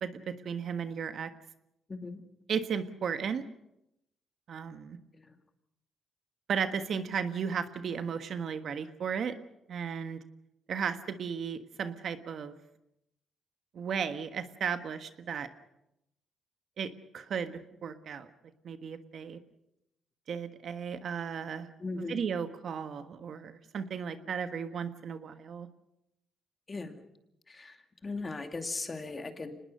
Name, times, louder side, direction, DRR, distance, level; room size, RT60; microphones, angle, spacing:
voice 1, 0.0-1.3 2.5-3.4 4.5-5.0 6.5-9.4 9.7-10.2 10.7-12.6 13.7-15.5 16.8-18.3 18.6-19.4 20.3-21.7 22.0-25.7, right 7 dB, 60° right, 10 dB, 1.3 m, -35 dB
voice 2, 1.9-2.2 5.1-5.3 21.8-22.2 26.7-27.0 27.5-27.8 28.0-29.6, left 3 dB, 30° left, 7 dB, 2.4 m, -38 dB
25.0 x 20.0 x 6.7 m, 0.84 s
cardioid pair, 90°, 0 cm